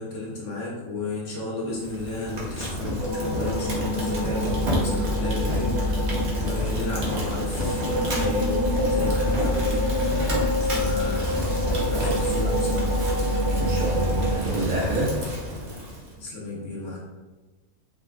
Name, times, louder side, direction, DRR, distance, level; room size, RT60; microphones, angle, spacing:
voice 1, 0.0-10.3 10.6-11.4 11.9-13.1 16.2-17.0, left 2 dB, 65° left, -4 dB, 1.0 m, -34 dB
Fire, 1.7-16.1, equal, 50° right, 0.5 m, -30 dB
sound 1, 3.0-14.3, left 1 dB, 70° right, 1.4 m, -26 dB
voice 2, 13.5-15.2, right 1 dB, 85° right, -6 dB, 1.1 m, -27 dB
3.1 x 2.4 x 2.2 m, 1.2 s
omnidirectional pair, 1.5 m